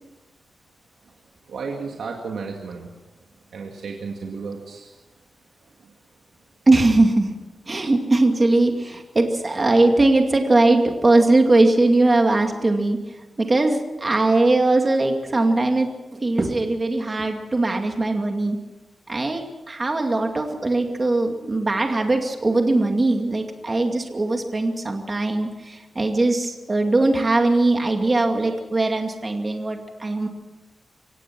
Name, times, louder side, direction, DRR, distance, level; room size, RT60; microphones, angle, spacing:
voice 1, 1.5-2.9 3.5-5.0 5.8-5.9, right 4 dB, 90° right, 0 dB, 2.2 m, -33 dB
voice 2, 6.7-7.3 7.7-18.6 19.1-30.3, right 2 dB, 25° right, 4 dB, 2.4 m, -20 dB
24.5 x 17.5 x 6.1 m, 1.1 s
wide cardioid pair, 155°, 0 cm